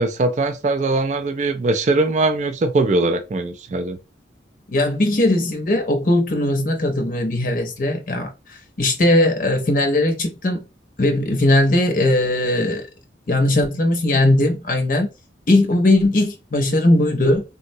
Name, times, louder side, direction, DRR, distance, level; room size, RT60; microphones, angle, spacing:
voice 1, 0.0-4.0, right 2 dB, 40° right, 0.3 m, -21 dB
voice 2, 4.7-10.6 11.0-12.9 13.3-15.1 15.5-17.4, left 1 dB, 45° left, 0.6 m, -19 dB
3.6 x 2.1 x 2.6 m
head